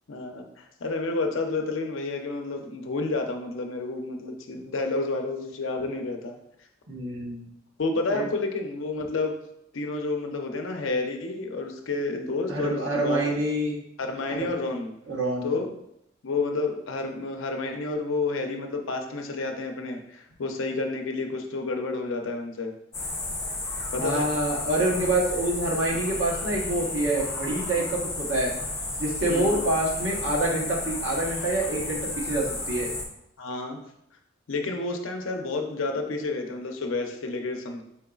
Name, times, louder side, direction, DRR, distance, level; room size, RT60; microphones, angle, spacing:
voice 1, 0.1-6.4 7.8-9.3 9.7-13.2 14.0-14.9 15.4-15.7 16.2-22.7 23.9-24.3 29.3-29.6 33.4-33.8 34.5-37.8, left 3 dB, 85° left, 4 dB, 0.6 m, -30 dB
voice 2, 6.9-7.5 8.1-8.2 12.5-13.8 14.3-14.5 15.1-15.5 24.0-28.5 29.0-32.9, right 1 dB, 75° right, -2 dB, 1.0 m, -26 dB
sound 1, 22.9-33.0, left 2 dB, 15° left, 0.9 m, -32 dB
4.5 x 3.8 x 2.3 m, 0.77 s
head